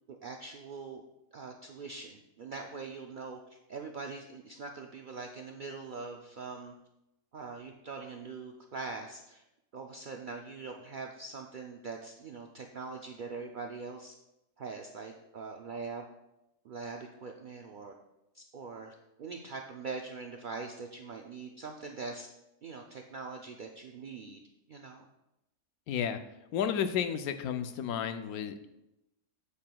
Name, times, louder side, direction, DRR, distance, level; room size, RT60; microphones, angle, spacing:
voice 1, 0.1-1.0 1.3-6.7 7.3-9.4 9.7-14.1 14.6-16.0 16.6-17.9 18.3-22.3 22.6-24.4 24.7-25.1, right 4 dB, 75° right, 2 dB, 0.4 m, -42 dB
voice 2, 25.9-26.2 26.5-28.7, left 8 dB, 90° left, 9 dB, 1.1 m, -32 dB
8.4 x 7.6 x 2.2 m, 0.90 s
omnidirectional pair, 1.5 m